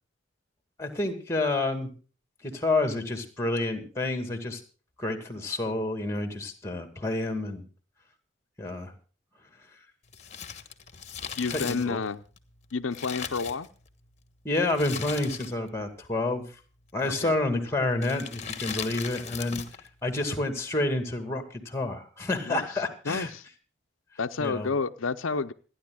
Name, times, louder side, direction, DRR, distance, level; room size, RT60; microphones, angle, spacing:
voice 1, 0.8-1.9 2.4-4.6 5.0-7.6 8.6-8.9 11.5-12.0 14.4-16.5 16.9-19.6 20.0-23.3 24.4-24.7, left 2 dB, 15° left, 7 dB, 2.2 m, -29 dB
Crumpling crinkling, 10.1-14.1 14.7-15.8 16.0-16.1 16.9-17.3 17.9-19.9 20.1-20.2, left 7 dB, 35° left, 1.4 m, -38 dB
voice 2, 11.4-12.2 12.7-13.7 17.0-17.3 22.5-22.7 23.1-23.4 24.2-25.5, left 4 dB, 85° left, 9 dB, 0.7 m, -30 dB
27.0 x 10.5 x 2.3 m, 0.37 s
head